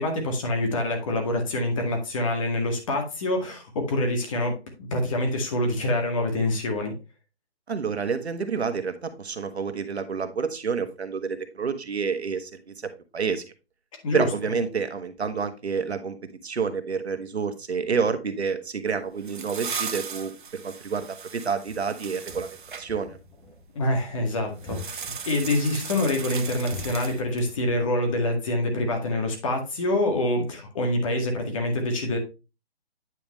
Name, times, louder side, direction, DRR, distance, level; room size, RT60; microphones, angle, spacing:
voice 1, 0.0-4.6 4.9-6.9 14.0-14.3 23.8-25.0 25.3-32.2, left 1 dB, 30° left, 3 dB, 2.0 m, -26 dB
voice 2, 7.7-13.4 14.1-22.5 22.8-23.2, right 5 dB, 75° right, 8 dB, 1.5 m, -29 dB
sound 1, 18.9-22.9 24.6-27.5, right 6 dB, 50° right, 0.9 m, -37 dB
sound 2, 22.3-27.9, left 2 dB, 5° left, 0.7 m, -44 dB
9.3 x 5.2 x 3.1 m, 0.28 s
hypercardioid pair, 160°, 33 cm